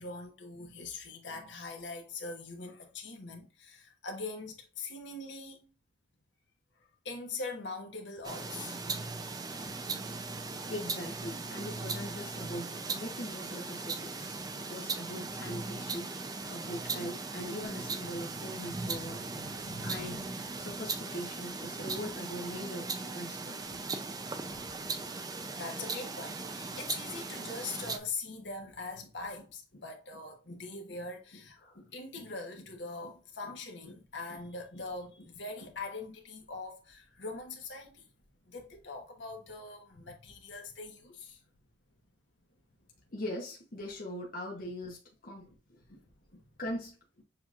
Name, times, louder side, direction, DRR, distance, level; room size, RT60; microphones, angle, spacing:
voice 1, 0.0-5.7 6.8-8.8 16.6-16.7 17.4-17.5 18.6-18.7 19.0-20.3 25.6-38.1 38.4-41.4 45.5-45.6 45.9-46.4, left 3 dB, 75° left, 1.2 m, -42 dB
sound 1, 8.2-28.0, right 3 dB, 20° right, 0.4 m, -38 dB
voice 2, 10.7-16.1 16.5-19.2 19.8-20.2 20.6-23.6 24.4-24.7 31.6-31.8 43.1-45.8 46.6-47.0, equal, 50° left, 0.9 m, -41 dB
6.8 x 2.9 x 2.5 m
head